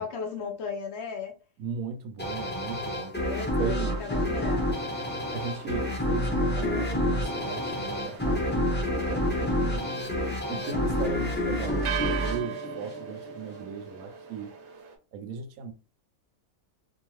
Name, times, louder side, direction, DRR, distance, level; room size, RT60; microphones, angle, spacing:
voice 1, 0.0-1.3 3.0-4.7 9.4-9.9 10.5-10.8, left 5 dB, 65° left, 0.7 m, -36 dB
voice 2, 1.6-3.1 3.6-4.0 5.3-8.7 9.0-9.8 10.5-14.5 15.1-15.7, right 5 dB, 85° right, 1.1 m, -37 dB
sound 1, 2.2-13.4, left 1 dB, 15° left, 0.4 m, -29 dB
sound 2, 3.8-15.0, right 7 dB, 60° right, 0.8 m, -41 dB
2.7 x 2.4 x 3.0 m
omnidirectional pair, 1.4 m